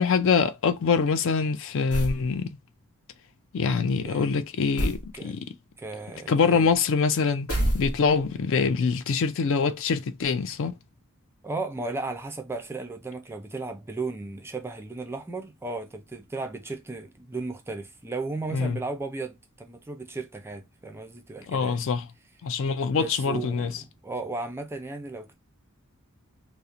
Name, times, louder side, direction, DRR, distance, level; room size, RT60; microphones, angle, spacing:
voice 1, 0.0-2.6 3.5-5.4 6.3-7.5 7.7-10.7 18.5-18.8 21.5-22.1 22.4-23.8, left 5 dB, 60° left, 0.4 m, -24 dB
sound 1, 1.9-2.3 4.8-5.1 7.5-8.3, right 1 dB, 80° left, 1.0 m, -27 dB
voice 2, 4.0-4.4 5.1-5.3 5.8-6.7 11.4-21.8 22.9-25.3, right 3 dB, 10° right, 0.3 m, -35 dB
2.8 x 2.0 x 2.4 m
head